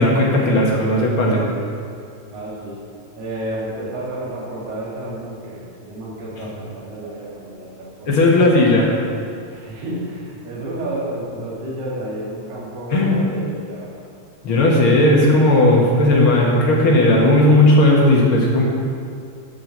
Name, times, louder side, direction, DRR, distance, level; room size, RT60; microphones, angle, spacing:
voice 1, 0.0-1.4 8.1-9.0 12.9-13.2 14.4-18.6, left 1 dB, 50° left, -2 dB, 1.8 m, -15 dB
voice 2, 2.3-2.8 3.1-8.1 9.5-13.9, right 1 dB, 85° right, -7 dB, 4.2 m, -31 dB
11.0 x 6.1 x 7.3 m, 2.4 s
omnidirectional pair, 3.9 m